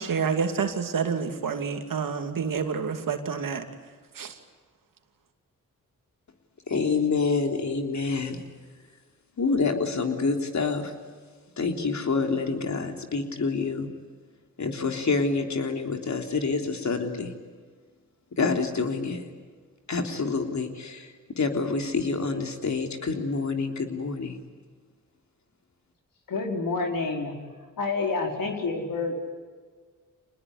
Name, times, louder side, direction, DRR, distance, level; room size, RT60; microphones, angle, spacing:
voice 1, 0.0-3.7 4.1-4.4, right 6 dB, 75° right, 6 dB, 2.7 m, -28 dB
voice 2, 6.7-8.4 9.4-10.9 11.6-13.9 14.6-17.3 18.4-19.2 19.9-21.1 21.4-24.4, left 4 dB, 55° left, 4 dB, 3.5 m, -27 dB
voice 3, 26.3-27.3 27.8-29.1, left 3 dB, 80° left, 2 dB, 4.6 m, -28 dB
26.0 x 20.5 x 9.7 m, 1.5 s
cardioid pair, 60°, 33 cm